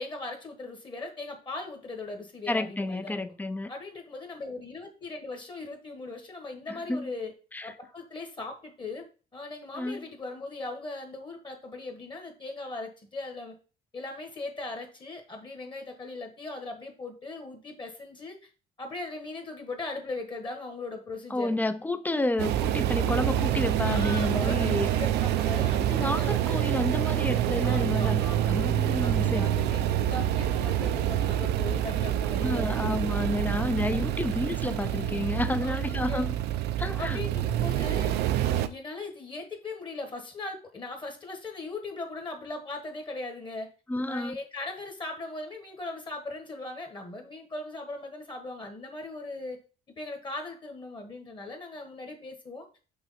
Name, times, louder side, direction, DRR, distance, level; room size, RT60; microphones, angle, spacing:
voice 1, 0.0-3.2 3.7-7.3 7.6-9.1 9.3-13.6 13.9-18.5 18.8-21.5 23.8-26.6 27.6-28.5 29.0-29.6 30.1-32.8 35.6-36.3 37.0-43.7 44.1-49.6 49.9-52.6, left 2 dB, 30° left, 1.4 m, -39 dB
voice 2, 2.5-3.7 6.7-7.1 7.5-7.7 9.7-10.0 21.3-24.9 25.8-29.4 32.4-36.4 36.8-37.2 43.9-44.4, left 2 dB, 10° left, 0.4 m, -30 dB
sound 1, 22.4-38.7, right 12 dB, 80° right, 0.5 m, -27 dB
6.2 x 3.0 x 5.6 m
cardioid pair, 110°, 17 cm